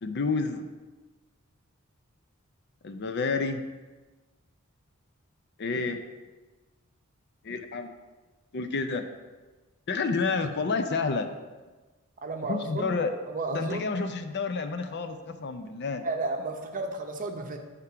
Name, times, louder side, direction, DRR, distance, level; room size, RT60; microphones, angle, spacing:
voice 1, 0.0-0.7 2.8-3.6 5.6-6.0 7.4-7.9 8.5-9.1 9.9-11.3 12.5-13.1 13.5-16.0, left 4 dB, 55° left, 8 dB, 0.5 m, -29 dB
voice 2, 12.2-12.9 13.3-13.9 16.0-17.6, right 3 dB, 40° right, 4 dB, 0.7 m, -32 dB
8.2 x 3.6 x 5.7 m, 1.3 s
head